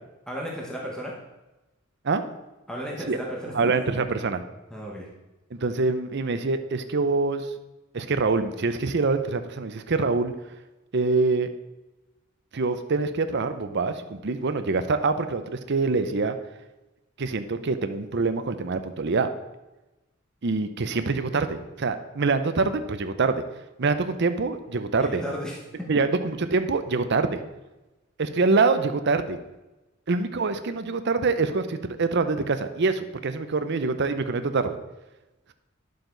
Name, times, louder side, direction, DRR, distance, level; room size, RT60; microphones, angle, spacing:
voice 1, 0.3-1.1 2.7-3.7 4.7-5.1 25.0-25.6, equal, 5° left, -3 dB, 1.2 m, -34 dB
voice 2, 3.5-4.4 5.5-7.5 7.9-10.3 10.9-11.5 12.5-16.4 17.2-19.3 20.4-23.4 23.8-25.2 25.9-27.4 28.2-29.4 30.1-34.8, right 3 dB, 60° right, 9 dB, 0.7 m, -25 dB
11.0 x 6.8 x 3.9 m, 1.1 s
head